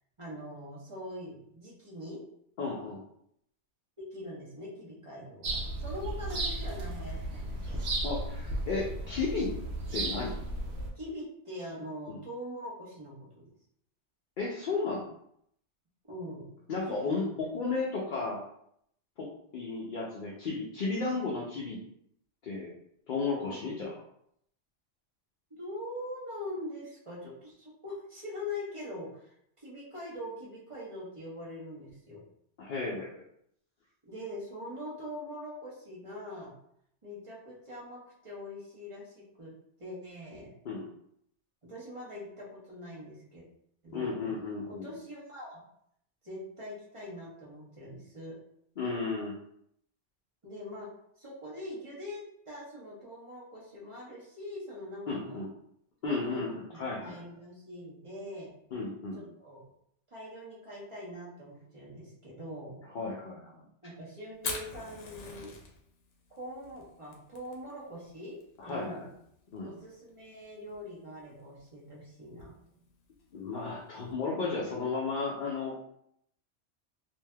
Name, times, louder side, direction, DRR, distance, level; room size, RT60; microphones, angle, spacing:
voice 1, 0.2-2.2 4.1-7.8 11.0-13.5 16.1-16.5 16.9-17.1 23.4-23.9 25.5-32.2 34.0-36.5 37.0-39.5 39.8-40.5 41.6-43.5 43.8-44.3 44.6-45.6 46.2-48.3 50.4-50.9 51.2-55.5 56.0-56.4 56.7-58.5 59.2-59.6 60.1-62.8 63.8-65.5 66.3-68.4 68.6-69.1 69.6-72.5, left 1 dB, 30° right, -6 dB, 1.0 m, -43 dB
voice 2, 2.6-3.0 7.6-7.8 8.0-9.5 9.9-10.4 12.1-12.2 14.4-15.1 16.7-18.4 19.2-21.8 22.4-22.7 23.1-23.9 32.6-33.2 40.6-40.9 43.9-44.9 48.8-49.3 55.1-55.5 56.0-57.2 58.7-59.2 62.9-63.6 68.6-69.1 69.5-69.7 73.3-75.8, left 4 dB, 55° left, -4 dB, 0.6 m, -34 dB
sound 1, 5.4-10.9, right 1 dB, 90° right, 1.0 m, -35 dB
Fire, 64.3-74.1, left 4 dB, 85° left, 1.0 m, -46 dB
3.2 x 2.7 x 2.2 m, 0.71 s
omnidirectional pair, 1.2 m